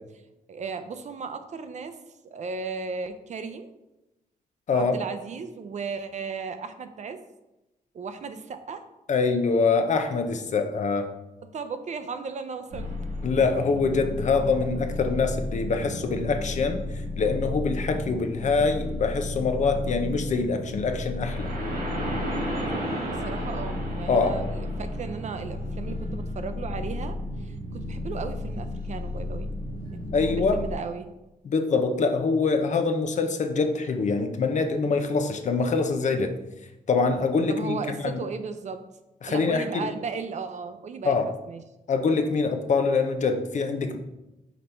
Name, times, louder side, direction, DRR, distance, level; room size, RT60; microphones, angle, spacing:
voice 1, 0.5-2.0 2.2-3.7 4.7-7.2 7.9-8.8 11.5-12.9 23.1-27.2 27.4-29.5 29.9-31.1 37.5-38.8 39.3-41.2 41.5-41.6, right 5 dB, 55° right, 9 dB, 0.5 m, -35 dB
voice 2, 4.7-5.0 9.1-11.1 13.2-21.5 24.1-24.4 30.1-30.6 31.4-36.3 36.9-38.2 39.2-39.9 41.0-41.3 41.9-44.0, left 4 dB, 55° left, 6 dB, 0.6 m, -24 dB
sound 1, 12.7-30.7, left 1 dB, 85° right, 1.7 m, -32 dB
5.2 x 4.1 x 4.4 m, 0.97 s
wide cardioid pair, 120°, 15 cm